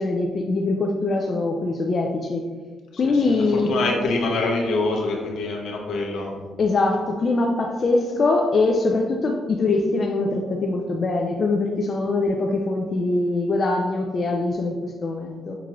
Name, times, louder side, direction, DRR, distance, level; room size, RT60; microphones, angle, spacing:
voice 1, 0.0-2.5 3.0-3.7 6.6-15.6, left 3 dB, 45° left, 1 dB, 0.4 m, -23 dB
voice 2, 2.9-6.4, left 3 dB, 75° left, 0 dB, 0.8 m, -25 dB
5.9 x 2.4 x 3.0 m, 1.5 s
cardioid pair, 90°, 0 cm